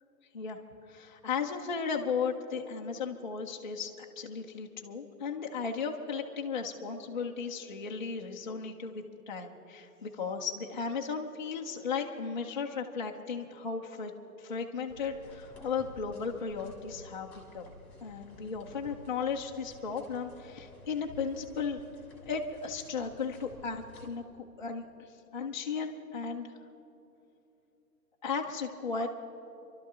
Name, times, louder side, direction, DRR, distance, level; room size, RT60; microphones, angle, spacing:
voice 1, 0.9-14.1 14.4-17.7 18.0-21.8 22.3-24.2 24.6-26.5 28.2-29.1, left 5 dB, 30° left, -1 dB, 0.5 m, -35 dB
sound 1, 14.9-24.0, equal, 5° left, 1.7 m, -52 dB
26.5 x 12.0 x 3.7 m, 2.9 s
hypercardioid pair, 170°, 49 cm